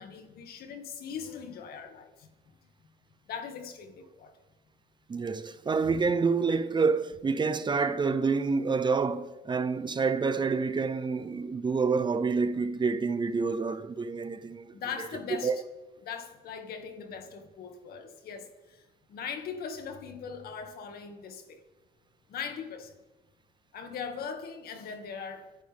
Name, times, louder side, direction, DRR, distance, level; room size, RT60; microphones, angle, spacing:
voice 1, 0.0-2.3 3.3-4.3 14.7-15.5 16.1-21.6 22.3-23.0 23.7-25.5, left 6 dB, 65° left, 2.1 m, -40 dB
voice 2, 5.1-15.1 15.4-15.6, right 4 dB, 25° right, 0.8 m, -28 dB
24.5 x 10.5 x 3.6 m
cardioid pair, 110°, 17 cm